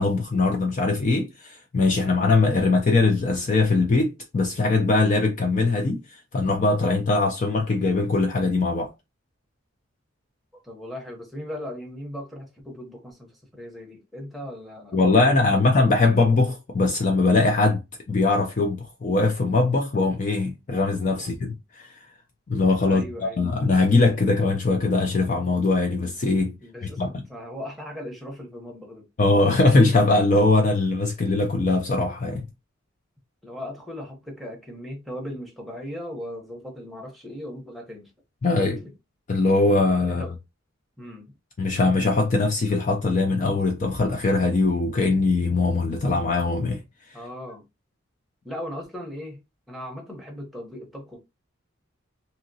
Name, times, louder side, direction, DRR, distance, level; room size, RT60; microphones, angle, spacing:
voice 1, 0.0-8.9 14.9-17.8 18.1-21.9 22.5-26.5 27.0-27.1 29.2-32.5 38.4-38.8 39.3-40.2 41.6-46.8, left 3 dB, 40° left, 0.4 m, -21 dB
voice 2, 10.5-15.7 22.8-23.4 26.6-29.1 33.4-38.1 38.7-38.9 40.2-40.3 41.0-41.3 47.1-47.6 48.4-51.2, equal, ahead, 0.7 m, -38 dB
2.8 x 2.8 x 2.6 m
head